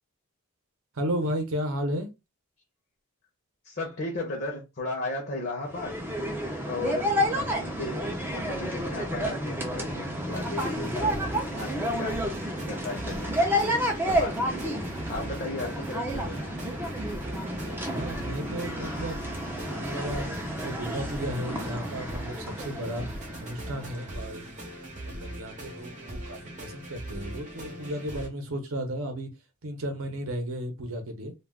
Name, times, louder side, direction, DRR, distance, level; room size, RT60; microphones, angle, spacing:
voice 1, 0.9-2.1 17.8-19.2 19.7-23.1 23.4-24.5 25.0-29.3 29.6-31.3, right 1 dB, 65° right, 0.7 m, -34 dB
voice 2, 3.6-6.0 6.6-11.2 11.5-12.3 12.6-13.8 14.0-14.8 15.1-16.7, left 2 dB, 45° left, 0.7 m, -36 dB
sound 1, 5.7-24.1, equal, 10° right, 0.4 m, -31 dB
sound 2, 10.3-28.3, right 1 dB, 35° right, 0.8 m, -40 dB
2.3 x 2.3 x 3.4 m
head